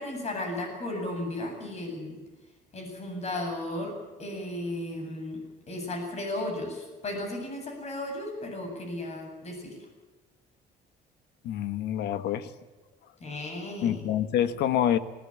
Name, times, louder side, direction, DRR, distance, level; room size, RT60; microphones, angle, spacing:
voice 1, 0.0-2.2 2.7-5.4 5.7-9.8 13.2-14.0, left 1 dB, 40° left, 4 dB, 8.0 m, -35 dB
voice 2, 11.4-12.5 13.8-15.0, left 10 dB, 80° left, 12 dB, 1.5 m, -26 dB
19.5 x 19.0 x 8.8 m, 1.2 s
cardioid pair, 110°, 17 cm